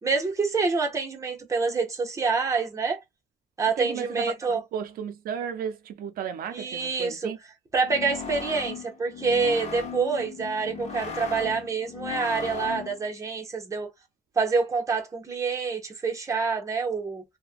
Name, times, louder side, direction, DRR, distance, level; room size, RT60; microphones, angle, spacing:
voice 1, 0.0-3.0 3.6-4.6 6.5-7.3 7.7-13.9 14.4-17.2, right 4 dB, 20° right, 0.7 m, -27 dB
voice 2, 3.8-7.4, right 8 dB, 85° right, 0.4 m, -34 dB
sound 1, 7.8-13.1, left 5 dB, 50° left, 0.8 m, -37 dB
2.4 x 2.1 x 2.4 m
wide cardioid pair, 155°, 15 cm